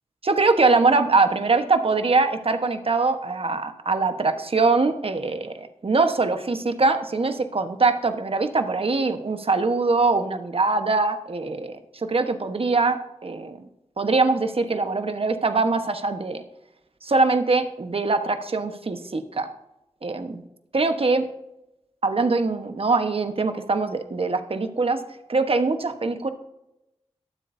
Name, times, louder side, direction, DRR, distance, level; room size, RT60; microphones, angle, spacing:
voice 1, 0.2-13.6 14.0-16.4 17.0-19.5 20.0-20.4 20.7-21.2 22.0-25.0 25.3-26.3, right 3 dB, 55° right, 7 dB, 1.2 m, -23 dB
22.5 x 7.9 x 2.7 m, 0.88 s
cardioid pair, 55°, 12 cm